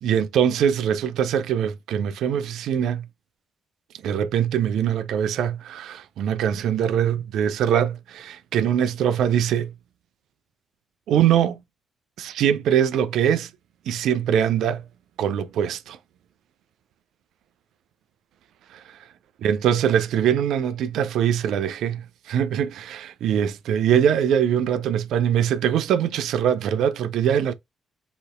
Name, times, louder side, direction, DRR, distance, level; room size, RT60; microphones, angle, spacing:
voice 1, 0.0-3.1 4.0-9.7 11.1-11.6 12.2-13.5 13.9-14.8 15.2-16.0 18.7-19.0 19.4-27.5, right 9 dB, 60° right, 0.4 m, -22 dB
3.9 x 3.8 x 2.4 m
figure-of-eight pair, 40°, 0 cm